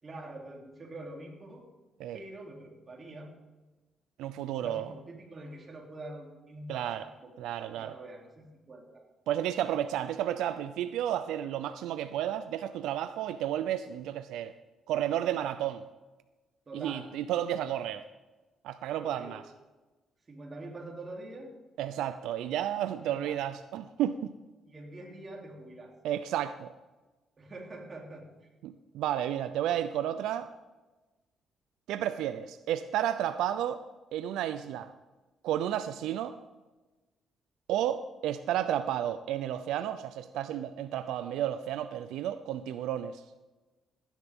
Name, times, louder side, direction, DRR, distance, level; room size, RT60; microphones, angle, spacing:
voice 1, 0.0-1.7 2.1-3.3 4.5-6.9 7.2-7.3 7.7-9.0 16.7-17.1 19.0-19.4 20.3-21.5 23.1-23.4 24.6-26.0 27.4-28.5, right 2 dB, 35° right, 0 dB, 3.0 m, -45 dB
voice 2, 4.2-4.9 6.7-7.1 7.4-7.9 9.3-14.5 14.9-15.8 16.7-18.0 18.6-19.4 21.8-24.3 26.0-26.7 28.6-30.5 31.9-33.8 34.1-34.9 35.4-36.4 37.7-43.2, right 11 dB, 90° right, 11 dB, 0.4 m, -32 dB
16.0 x 10.0 x 3.6 m, 1.2 s
cardioid pair, 90°, 0 cm